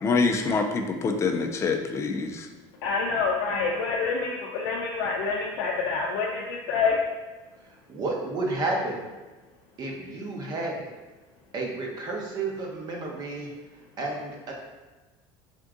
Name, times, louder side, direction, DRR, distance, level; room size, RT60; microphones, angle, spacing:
voice 1, 0.0-2.5, left 4 dB, 25° left, 4 dB, 0.4 m, -25 dB
voice 2, 2.8-6.9, left 4 dB, 85° left, -2 dB, 0.5 m, -27 dB
voice 3, 7.9-9.0 9.8-10.9 11.5-13.5 14.0-14.5, right 2 dB, 40° right, -1 dB, 0.9 m, -31 dB
3.6 x 2.6 x 3.6 m, 1.2 s
cardioid pair, 135°, 11 cm